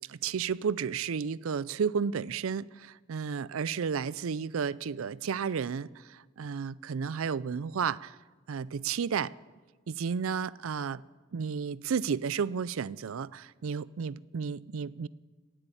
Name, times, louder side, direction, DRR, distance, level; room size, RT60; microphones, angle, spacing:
voice 1, 0.1-8.2 8.5-9.3 9.9-11.0 11.3-15.1, right 6 dB, 80° right, 0.4 m, -32 dB
17.0 x 8.1 x 9.0 m
head